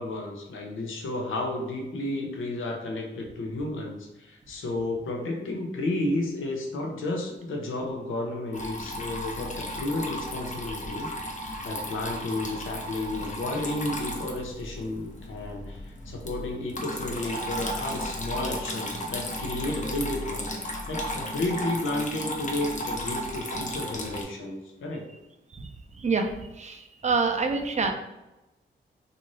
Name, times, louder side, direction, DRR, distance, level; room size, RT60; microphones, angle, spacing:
voice 1, 0.0-25.1, left 2 dB, 90° left, 1 dB, 0.6 m, -32 dB
Water tap faucet / Trickle dribble, 8.5-24.2, left 1 dB, 40° left, 0.6 m, -34 dB
voice 2, 27.0-27.9, right 4 dB, 35° right, 4 dB, 0.5 m, -25 dB
2.7 x 2.5 x 3.0 m, 0.98 s
cardioid pair, 60°, 20 cm